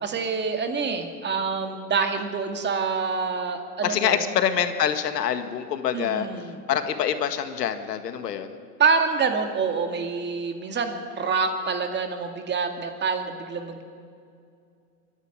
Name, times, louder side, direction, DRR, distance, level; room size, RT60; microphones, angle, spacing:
voice 1, 0.0-4.2 5.9-6.5 8.8-13.8, right 5 dB, 20° right, 6 dB, 2.2 m, -26 dB
voice 2, 3.8-8.6, left 8 dB, 85° left, 9 dB, 1.9 m, -26 dB
24.0 x 11.5 x 9.7 m, 2.4 s
hypercardioid pair, 115°, 47 cm